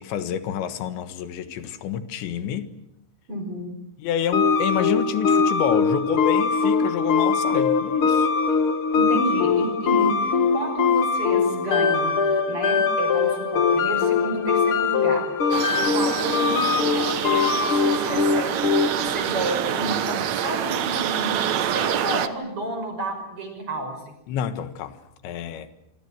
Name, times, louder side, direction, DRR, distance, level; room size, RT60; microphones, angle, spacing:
voice 1, 0.0-2.7 4.0-8.3 24.3-25.7, left 9 dB, 90° left, 3.8 m, -28 dB
voice 2, 3.3-3.7 8.9-24.1, right 2 dB, 30° right, 6.3 m, -31 dB
sound 1, 4.3-19.1, left 5 dB, 55° left, 1.5 m, -22 dB
sound 2, 15.5-22.3, right 10 dB, 75° right, 1.6 m, -26 dB
27.5 x 23.5 x 7.7 m
omnidirectional pair, 5.0 m